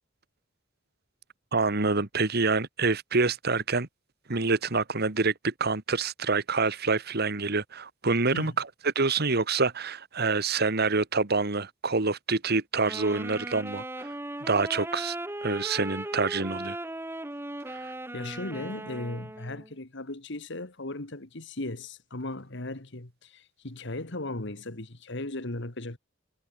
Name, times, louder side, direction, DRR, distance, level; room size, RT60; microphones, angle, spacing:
voice 1, 1.5-3.9 4.3-8.7 8.9-14.1 14.4-15.1 15.4-16.8 17.7-17.9, right 3 dB, 55° right, 1.8 m, -27 dB
Wind instrument woodwind instrument, 12.8-19.7, right 1 dB, 10° right, 2.3 m, -37 dB
voice 2, 18.1-26.0, left 2 dB, 65° left, 2.3 m, -37 dB
head